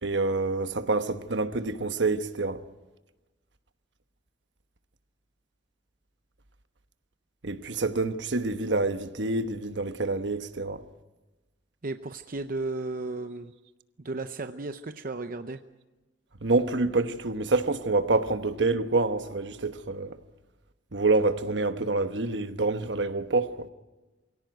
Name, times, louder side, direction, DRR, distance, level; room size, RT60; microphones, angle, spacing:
voice 1, 0.0-2.6 7.4-10.8 16.4-20.2 20.9-23.7, right 3 dB, 70° right, 1.2 m, -27 dB
voice 2, 11.8-13.5 14.0-15.6, right 2 dB, 50° right, 0.7 m, -34 dB
24.0 x 17.0 x 9.2 m
head